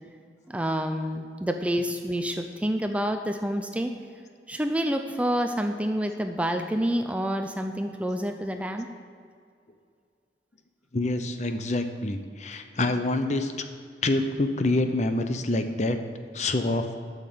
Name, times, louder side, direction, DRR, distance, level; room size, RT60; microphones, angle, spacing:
voice 1, 0.5-3.9 4.5-8.9, equal, 5° right, 6 dB, 0.4 m, -28 dB
voice 2, 10.9-13.5 14.0-16.0 16.3-16.9, left 2 dB, 40° left, 8 dB, 0.7 m, -26 dB
8.8 x 6.5 x 7.7 m, 2.2 s
head